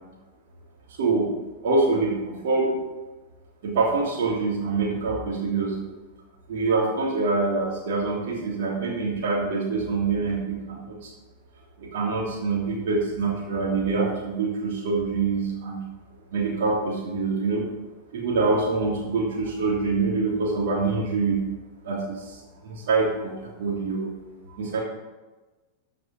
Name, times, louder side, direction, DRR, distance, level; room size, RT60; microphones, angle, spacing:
voice 1, 1.6-2.8 3.6-5.8 6.5-11.1 11.8-15.8 16.3-17.6 18.1-21.4 21.8-24.1 24.5-24.8, right 3 dB, 55° right, -2 dB, 3.2 m, -25 dB
13.5 x 6.0 x 5.2 m, 1.2 s
figure-of-eight pair, 90°, 0 cm